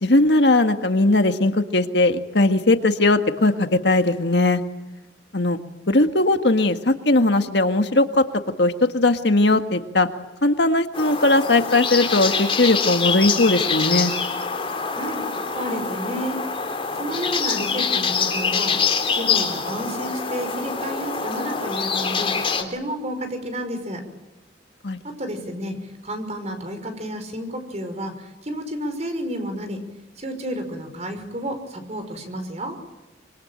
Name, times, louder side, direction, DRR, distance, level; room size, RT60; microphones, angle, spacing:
voice 1, 0.0-4.6 5.3-5.6 5.9-8.3 8.6-10.1 10.4-14.1 24.8-25.0, left 2 dB, 60° left, 7 dB, 1.8 m, -19 dB
sound 1, 10.9-22.6, left 5 dB, 30° left, 3.7 m, -25 dB
voice 2, 14.9-15.3 15.5-16.4 16.9-24.0 25.0-29.8 30.2-32.8, equal, 35° right, 7 dB, 5.6 m, -31 dB
26.0 x 25.0 x 9.1 m, 1.1 s
head